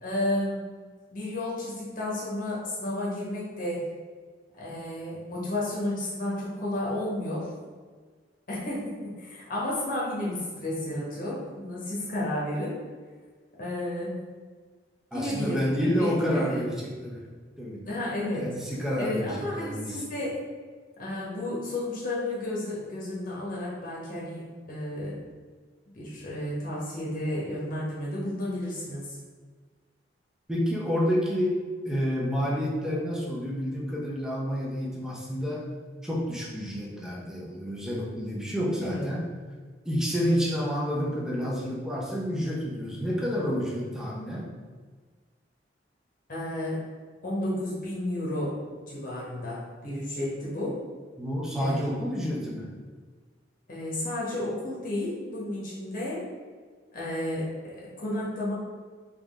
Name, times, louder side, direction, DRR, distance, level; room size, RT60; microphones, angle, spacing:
voice 1, 0.0-0.6 1.1-3.8 4.6-7.5 8.5-12.8 13.6-14.2 15.1-16.6 17.9-18.5 19.0-20.4 21.0-25.2 25.9-29.2 38.8-39.0 46.3-46.8 47.2-48.6 48.9-50.8 51.6-51.9 53.7-56.2 56.9-58.5, left 1 dB, 50° left, -6 dB, 1.2 m, -32 dB
voice 2, 15.1-17.2 17.6-17.9 18.4-20.0 30.5-31.6 31.8-35.7 36.0-39.3 39.8-44.5 51.2-52.7, equal, 5° right, -4 dB, 0.8 m, -29 dB
3.6 x 3.3 x 3.6 m, 1.5 s
head